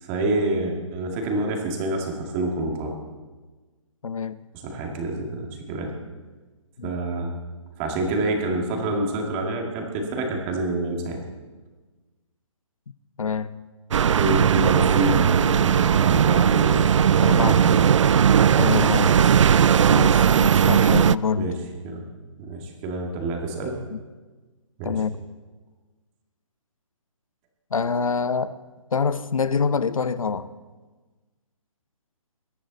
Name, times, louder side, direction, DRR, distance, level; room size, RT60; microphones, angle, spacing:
voice 1, 0.0-3.0 4.6-5.9 6.8-7.3 7.8-11.2 14.2-16.8 17.3-17.8 21.4-21.5 21.8-22.0 22.4-23.8 24.8-25.0, right 2 dB, 20° right, 1 dB, 2.3 m, -27 dB
voice 2, 4.0-4.4 6.8-6.9 13.2-13.7 17.2-17.8 18.6-19.3 19.8-21.6 23.9-24.0 24.8-25.2 27.7-28.6 28.9-30.5, left 5 dB, 85° left, 15 dB, 0.8 m, -26 dB
sound 1, 13.9-21.2, right 8 dB, 65° right, 0.4 m, -18 dB
22.0 x 11.0 x 4.1 m, 1.3 s
hypercardioid pair, 160°, 17 cm